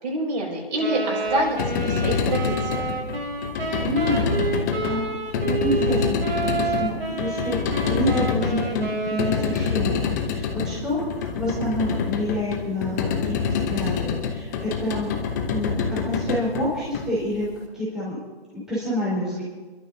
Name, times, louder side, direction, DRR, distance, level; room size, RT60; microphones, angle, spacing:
voice 1, 0.0-2.9, right 1 dB, 45° right, -2 dB, 6.1 m, -27 dB
Wind instrument woodwind instrument, 0.8-9.8, right 4 dB, 75° right, 3.7 m, -29 dB
sound 1, 1.4-17.5, left 6 dB, 15° left, 0.9 m, -26 dB
voice 2, 3.8-5.1 5.4-15.2 15.5-17.5 17.7-18.2 18.5-19.4, equal, ahead, -10 dB, 4.5 m, -28 dB
27.5 x 13.0 x 2.8 m, 1.3 s
figure-of-eight pair, 150°, 31 cm